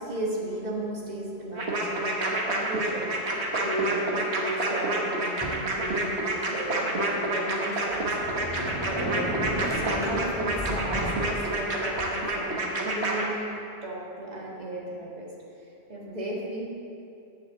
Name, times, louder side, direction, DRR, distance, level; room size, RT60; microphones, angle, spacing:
voice 1, 0.0-8.2 8.8-13.5 13.8-15.3 15.6-16.7, right 1 dB, 40° right, -3 dB, 1.9 m, -35 dB
sound 1, 1.6-13.2, right 2 dB, 75° right, 1.5 m, -28 dB
Sliding door, 5.4-6.3 6.8-6.9 7.5-12.3, equal, 5° right, 2.5 m, -34 dB
9.2 x 7.2 x 7.5 m, 2.6 s
omnidirectional pair, 1.1 m